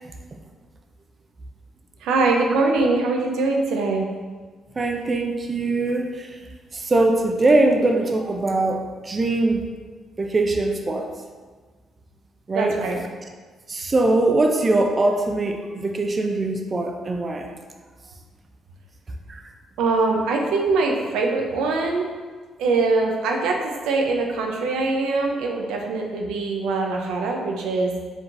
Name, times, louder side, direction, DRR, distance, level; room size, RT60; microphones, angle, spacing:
voice 1, 2.0-4.1 12.5-13.0 19.8-22.1 22.6-28.0, right 3 dB, 90° right, 1 dB, 0.5 m, -22 dB
voice 2, 4.8-6.4 6.7-9.6 10.2-11.1 12.5-12.8 13.7-17.5 19.3-19.4, right 2 dB, 30° right, 4 dB, 0.4 m, -22 dB
4.9 x 3.8 x 2.5 m, 1.4 s
cardioid pair, 90°, 0 cm